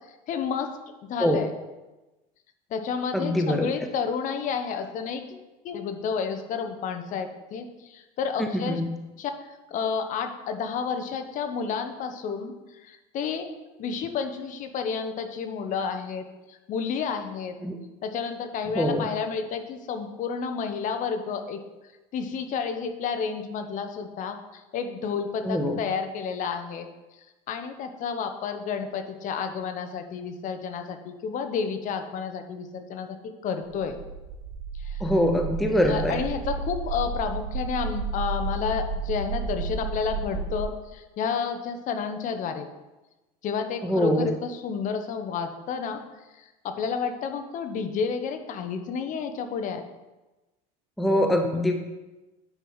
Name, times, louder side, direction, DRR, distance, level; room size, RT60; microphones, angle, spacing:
voice 1, 0.3-0.7 1.0-1.5 2.7-8.8 9.2-13.5 13.8-17.6 18.0-21.6 22.1-26.9 27.5-34.0 34.8-35.1 35.8-42.7 43.4-46.0 46.3-49.8, left 6 dB, 45° left, 7 dB, 0.9 m, -31 dB
voice 2, 3.1-3.7 8.4-8.9 17.6-17.8 18.8-19.1 25.4-25.8 35.0-36.1 43.8-44.3 51.0-51.7, equal, ahead, 4 dB, 0.6 m, -23 dB
sound 1, 33.7-40.6, right 4 dB, 90° right, 2.3 m, -32 dB
9.1 x 4.7 x 5.6 m, 1.1 s
cardioid pair, 135°, 18 cm